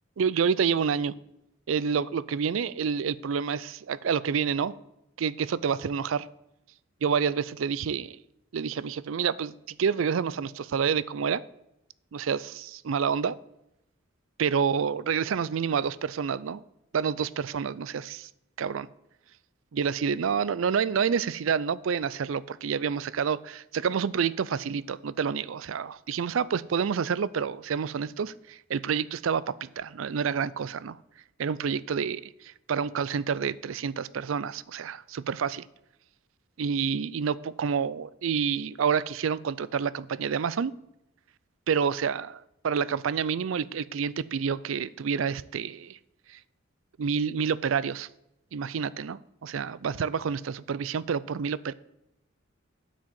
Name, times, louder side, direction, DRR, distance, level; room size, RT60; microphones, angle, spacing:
voice 1, 0.2-1.1 1.7-4.7 5.2-6.3 7.0-8.2 8.5-11.4 12.1-13.4 14.4-16.6 16.9-18.3 18.6-18.9 19.7-31.0 31.4-35.7 36.6-40.7 41.7-46.0 46.3-46.4 47.0-48.1 48.5-51.7, right 6 dB, 75° right, 19 dB, 0.4 m, -28 dB
8.3 x 6.2 x 7.5 m, 0.84 s
head